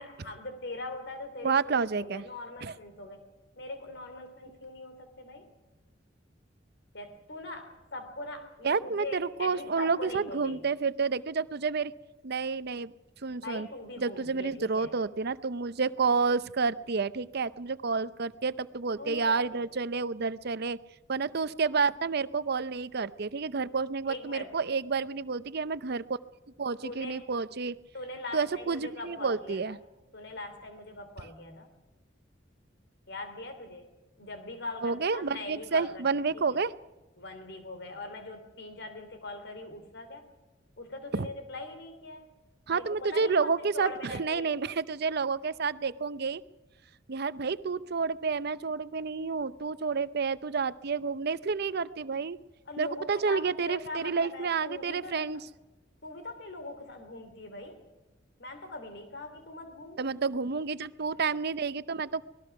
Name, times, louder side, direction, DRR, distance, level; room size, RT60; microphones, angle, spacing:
voice 1, 0.0-3.2 3.5-5.5 6.9-10.7 13.4-14.9 19.0-19.6 24.1-24.5 26.8-27.3 27.9-29.8 30.1-31.7 33.1-33.9 34.2-36.6 37.2-40.3 40.8-42.3 42.7-44.6 52.7-55.3 56.0-57.8 58.4-60.0, left 2 dB, 65° left, 8 dB, 3.3 m, -42 dB
voice 2, 1.4-2.2 2.6-2.7 8.6-11.9 12.2-12.9 13.2-13.7 14.0-20.8 21.1-26.0 26.6-27.8 28.3-29.8 34.8-36.7 41.1-41.3 42.7-46.4 47.1-52.4 52.8-55.4 60.0-62.2, right 4 dB, 55° right, 15 dB, 0.7 m, -30 dB
25.5 x 19.5 x 6.0 m, 1.1 s
head